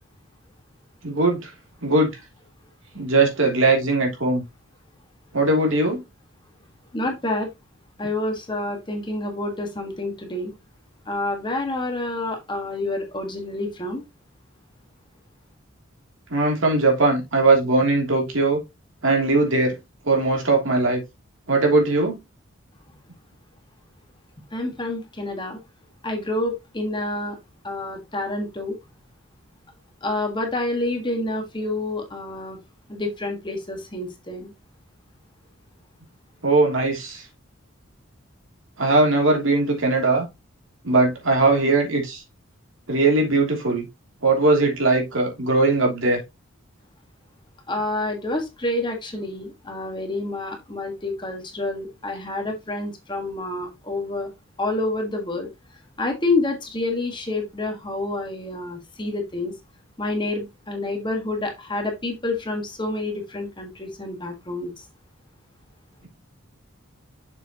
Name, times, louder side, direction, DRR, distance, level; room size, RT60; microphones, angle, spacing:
voice 1, 1.0-1.5 1.8-2.1 2.9-4.4 5.3-6.0 16.3-18.6 19.0-19.8 20.1-21.0 21.5-22.2 36.4-37.2 38.8-40.2 40.8-42.2 42.9-43.8 44.2-46.2, right 2 dB, 65° right, 3.0 m, -20 dB
voice 2, 6.9-7.5 8.0-10.5 11.1-14.0 24.5-25.6 26.0-27.4 27.6-28.8 30.0-32.6 32.9-34.5 47.7-54.3 54.6-55.5 56.0-59.5 60.0-64.8, left 2 dB, 20° left, 1.7 m, -28 dB
6.8 x 6.8 x 3.0 m
head